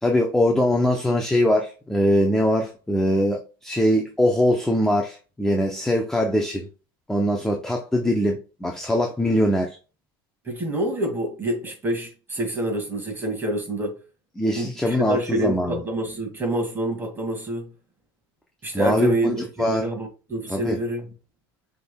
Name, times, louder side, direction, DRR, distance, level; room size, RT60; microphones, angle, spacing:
voice 1, 0.0-6.7 7.1-9.8 14.4-15.8 18.7-19.8 20.5-20.8, equal, 5° left, 0.6 m, -22 dB
voice 2, 10.4-14.0 14.6-17.7 18.6-21.1, right 1 dB, 15° right, 2.0 m, -27 dB
5.9 x 3.6 x 2.2 m
supercardioid pair, 125°, 13 cm